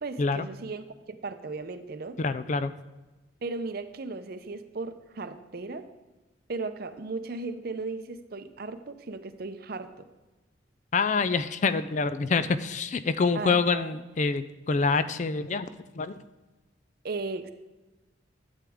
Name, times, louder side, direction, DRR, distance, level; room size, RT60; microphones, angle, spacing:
voice 1, 0.0-2.2 3.4-5.9 6.5-10.1 13.3-14.0 17.0-17.5, right 3 dB, 50° right, 10 dB, 0.6 m, -36 dB
voice 2, 2.2-2.7 10.9-15.7 15.9-16.2, left 4 dB, 40° left, 13 dB, 0.4 m, -26 dB
12.5 x 8.3 x 3.6 m, 1.1 s
head